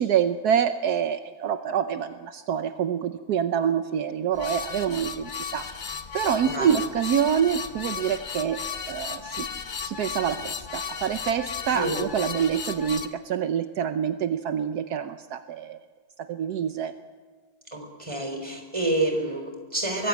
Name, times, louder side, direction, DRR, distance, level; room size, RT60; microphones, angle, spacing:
voice 1, 0.0-5.7 6.1-8.6 8.9-9.5 9.8-15.8 16.3-16.9, right 8 dB, 75° right, 9 dB, 1.3 m, -26 dB
sound 1, 4.3-13.1, left 6 dB, 35° left, 0.9 m, -35 dB
voice 2, 6.4-6.8 11.7-12.1 17.7-20.1, right 2 dB, 20° right, 3 dB, 4.1 m, -28 dB
23.0 x 15.5 x 8.6 m, 1.5 s
omnidirectional pair, 1.7 m